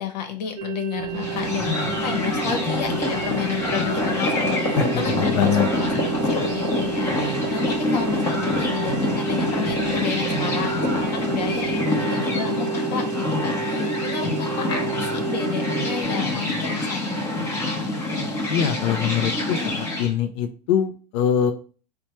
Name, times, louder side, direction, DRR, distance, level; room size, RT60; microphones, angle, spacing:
voice 1, 0.0-17.1, left 8 dB, 80° left, 6 dB, 0.9 m, -31 dB
sound 1, 0.6-16.0, right 10 dB, 85° right, 0.4 m, -32 dB
sound 2, 0.9-11.8, right 5 dB, 25° right, 0.5 m, -37 dB
sound 3, 1.1-20.1, left 2 dB, 15° left, 0.8 m, -25 dB
voice 2, 4.8-5.7 18.5-21.5, left 8 dB, 45° left, 4 dB, 0.4 m, -23 dB
4.3 x 2.2 x 2.9 m, 0.37 s
supercardioid pair, 165°, 21 cm